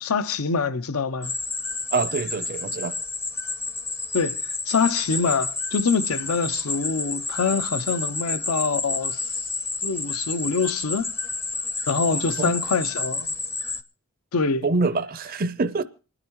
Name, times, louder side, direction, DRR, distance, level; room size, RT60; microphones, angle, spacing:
voice 1, 0.0-1.3 4.1-4.4 4.7-9.3 9.8-11.1 11.9-13.3 14.3-14.7, left 5 dB, 75° left, 0.6 m, -25 dB
sound 1, 1.2-13.8, left 3 dB, 10° left, 0.5 m, -30 dB
voice 2, 1.9-3.0 12.1-12.5 14.6-15.8, right 3 dB, 40° right, 0.5 m, -26 dB
27.5 x 9.8 x 3.0 m
head